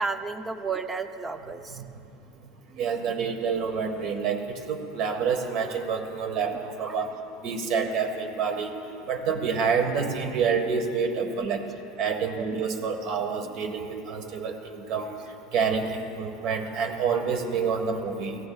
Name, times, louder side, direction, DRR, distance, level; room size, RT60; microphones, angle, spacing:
voice 1, 0.0-1.8 2.7-2.9 6.8-7.1 12.1-12.2 13.5-13.6 17.7-17.8, right 4 dB, 15° right, 8 dB, 0.6 m, -33 dB
voice 2, 2.8-7.1 7.4-8.7 9.1-11.6 12.0-15.1 15.5-18.4, right 6 dB, 45° right, 5 dB, 1.6 m, -28 dB
28.5 x 17.0 x 2.4 m, 2.7 s
supercardioid pair, 170°, 0 cm